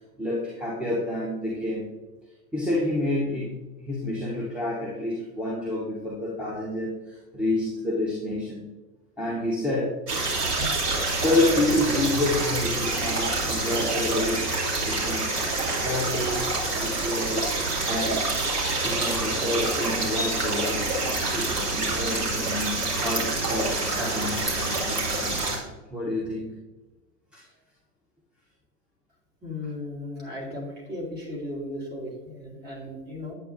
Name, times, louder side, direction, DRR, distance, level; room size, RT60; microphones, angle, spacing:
voice 1, 0.2-1.9 2.5-8.7 9.2-10.0 10.4-10.6 11.1-14.5 14.8-15.4 15.7-17.5 17.9-18.4 18.8-20.9 21.3-24.6 25.9-26.7 27.3-27.5, left 1 dB, ahead, -6 dB, 0.9 m, -29 dB
sound 1, 10.1-25.6, right 2 dB, 75° right, 2.6 m, -27 dB
voice 2, 29.4-33.3, left 1 dB, 20° right, -3 dB, 2.6 m, -36 dB
9.1 x 8.1 x 2.6 m, 1.1 s
figure-of-eight pair, 95°, 47 cm